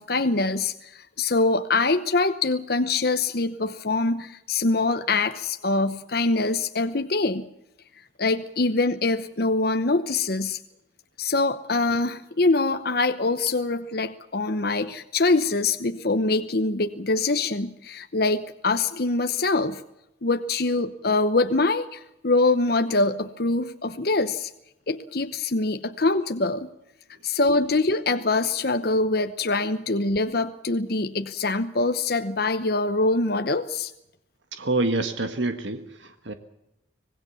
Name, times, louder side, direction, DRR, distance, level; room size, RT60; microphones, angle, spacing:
voice 1, 0.0-7.5 8.2-10.6 11.2-19.8 20.2-24.5 24.9-26.7 27.2-33.9, left 3 dB, 50° left, 8 dB, 0.9 m, -24 dB
voice 2, 34.5-36.3, right 2 dB, 70° right, 8 dB, 1.6 m, -27 dB
25.5 x 18.5 x 7.1 m, 0.86 s
head